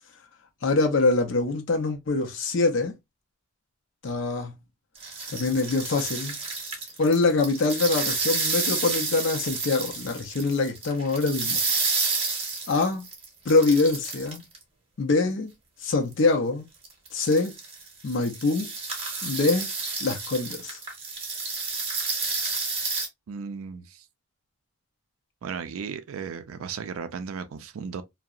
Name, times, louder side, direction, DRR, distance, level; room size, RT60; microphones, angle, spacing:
voice 1, 0.6-2.9 4.0-4.6 5.3-6.4 7.0-11.6 12.7-13.1 13.5-14.4 15.0-15.5 15.8-16.6 17.1-17.6 18.0-18.7 19.2-19.7 20.0-20.8, left 3 dB, 60° left, 0.5 m, -24 dB
sound 1, 4.9-14.6 16.1-16.2 16.8-23.1, right 4 dB, 25° right, 0.7 m, -30 dB
voice 2, 23.3-24.0 25.4-28.0, right 6 dB, 80° right, 0.4 m, -35 dB
2.7 x 2.0 x 2.3 m
head